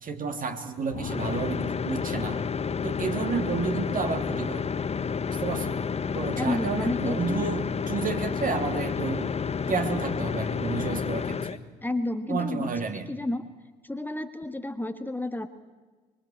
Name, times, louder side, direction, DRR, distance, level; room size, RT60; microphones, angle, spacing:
voice 1, 0.0-2.5 2.8-4.7 5.3-5.8 6.1-9.3 9.7-11.6 12.3-13.1, right 4 dB, 40° right, 6 dB, 3.0 m, -31 dB
sound 1, 0.9-11.6, left 6 dB, 30° left, 1.2 m, -30 dB
voice 2, 6.4-7.5 11.8-12.7 13.1-13.5 13.8-15.5, left 2 dB, 10° left, 8 dB, 1.6 m, -31 dB
25.0 x 22.0 x 8.8 m, 1.3 s
hypercardioid pair, 55°, 21 cm